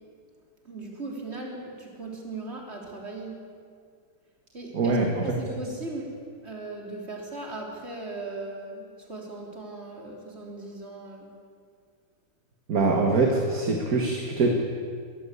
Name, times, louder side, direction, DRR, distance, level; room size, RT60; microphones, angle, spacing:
voice 1, 0.6-3.5 4.5-11.4, right 2 dB, 30° right, 0 dB, 3.9 m, -38 dB
voice 2, 4.7-5.1 12.7-14.5, right 3 dB, 50° right, 2 dB, 2.1 m, -23 dB
22.0 x 15.5 x 8.5 m, 2.1 s
omnidirectional pair, 2.1 m